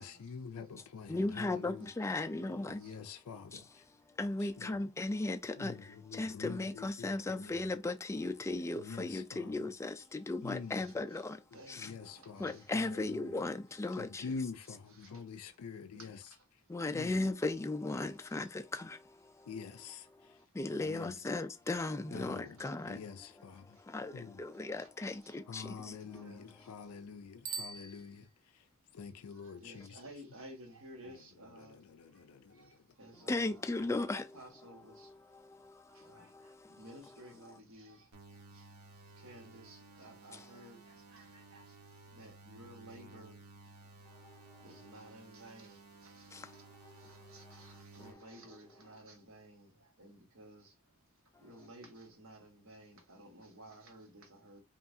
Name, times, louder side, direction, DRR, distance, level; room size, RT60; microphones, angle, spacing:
voice 1, 0.0-1.9 2.7-3.8 4.4-4.8 5.6-7.7 8.7-9.7 10.4-10.9 11.5-13.5 14.0-16.2 16.9-17.2 19.5-20.4 20.8-21.3 22.1-22.6 22.9-23.8 24.1-24.4 25.5-28.7 28.9-30.0 31.0-32.7, left 5 dB, 80° left, 0.4 m, -46 dB
voice 2, 1.1-2.8 3.5-3.6 4.2-11.4 11.7-11.9 12.4-14.2 16.7-19.5 20.3-23.0 23.6-26.4 26.7-26.8 33.3-34.4 34.9-36.8 37.5-37.6 40.3-40.5 44.6-44.8 46.3-47.6 48.0-48.1, left 2 dB, 15° left, 0.3 m, -37 dB
voice 3, 2.3-3.0 10.8-11.2 11.5-12.7 14.9-15.2 15.9-16.4 18.2-18.3 22.6-22.7 23.7-23.8 24.8-25.4 26.0-26.7 27.7-28.1 29.3-31.8 32.1-32.2 32.5-33.6 34.1-35.1 35.9-41.8 42.1-43.7 44.6-50.7 51.4-54.6, right 1 dB, 65° right, 1.4 m, -55 dB
Bicycle bell, 27.4-28.7, right 5 dB, 35° right, 0.5 m, -44 dB
sound 1, 38.1-48.1, right 3 dB, 85° right, 1.1 m, -56 dB
5.5 x 2.4 x 2.7 m
head